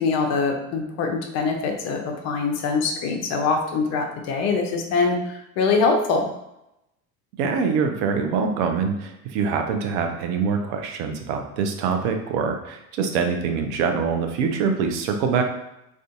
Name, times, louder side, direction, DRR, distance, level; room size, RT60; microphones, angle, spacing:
voice 1, 0.0-6.3, left 4 dB, 35° left, 3 dB, 0.5 m, -23 dB
voice 2, 7.4-15.4, right 5 dB, 50° right, 5 dB, 0.5 m, -24 dB
2.5 x 2.3 x 2.4 m, 0.85 s
figure-of-eight pair, 70°, 47 cm